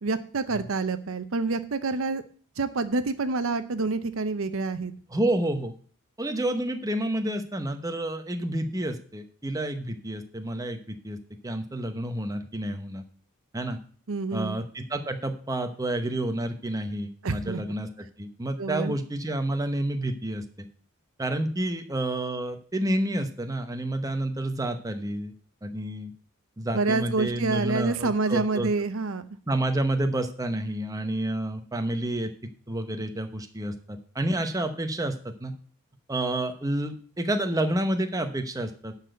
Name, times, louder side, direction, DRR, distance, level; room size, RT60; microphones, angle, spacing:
voice 1, 0.0-2.2 2.6-4.9 14.1-14.6 17.2-17.6 18.6-18.9 26.7-29.3, right 3 dB, 60° right, 11 dB, 0.7 m, -27 dB
voice 2, 5.1-5.7 6.2-11.2 11.4-13.0 13.5-13.8 14.3-20.7 21.2-25.3 25.6-26.1 26.6-28.7 29.5-32.3 32.7-35.5 36.1-38.9, right 1 dB, 15° right, 6 dB, 0.9 m, -29 dB
11.5 x 4.1 x 7.8 m, 0.43 s
head